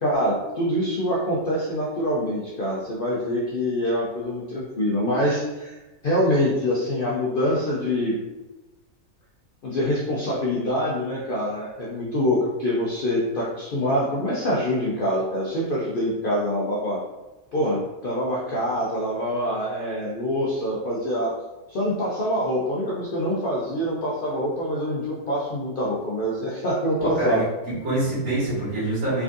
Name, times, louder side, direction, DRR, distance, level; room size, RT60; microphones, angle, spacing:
voice 1, 0.0-5.8 6.0-8.2 9.6-17.0 17.5-21.3 21.7-27.4, equal, 55° left, -6 dB, 0.6 m, -25 dB
voice 2, 27.2-29.2, right 2 dB, 60° right, -9 dB, 2.2 m, -25 dB
3.6 x 3.4 x 2.5 m, 1.1 s
omnidirectional pair, 1.6 m